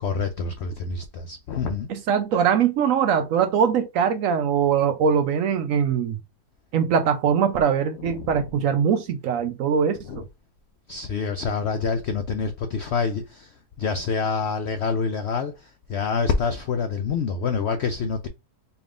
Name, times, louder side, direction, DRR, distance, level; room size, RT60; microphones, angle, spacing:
voice 1, 0.0-1.9 8.0-8.4 10.1-10.2 10.9-18.3, left 5 dB, 75° left, 0.6 m, -27 dB
voice 2, 1.9-6.2 6.7-10.2, right 7 dB, 70° right, 0.8 m, -22 dB
4.5 x 3.4 x 2.4 m
omnidirectional pair, 1.7 m